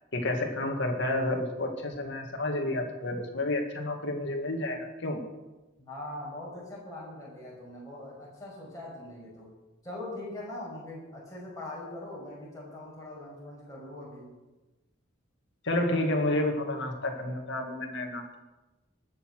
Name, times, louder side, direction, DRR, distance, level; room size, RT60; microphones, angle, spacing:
voice 1, 0.1-5.2 15.6-18.4, left 1 dB, 60° left, 3 dB, 2.1 m, -30 dB
voice 2, 5.8-9.5 9.8-14.3, left 1 dB, 15° left, -6 dB, 6.1 m, -42 dB
19.5 x 7.0 x 6.3 m, 1.1 s
head